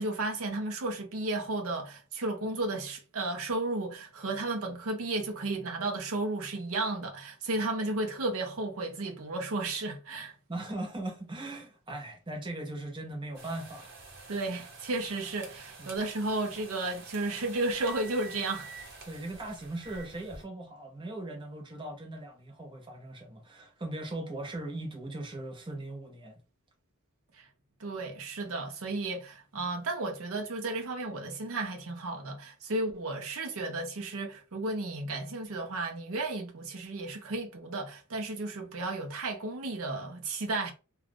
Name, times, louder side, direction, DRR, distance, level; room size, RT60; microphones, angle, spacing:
voice 1, 0.0-10.3 14.3-18.7 27.3-27.4 27.8-40.7, right 2 dB, 85° right, 0.7 m, -33 dB
voice 2, 10.5-13.9 15.8-16.1 19.0-26.4, right 2 dB, 20° right, 0.7 m, -39 dB
sound 1, 13.3-20.4, right 3 dB, 50° right, 1.0 m, -48 dB
2.4 x 2.3 x 3.4 m
head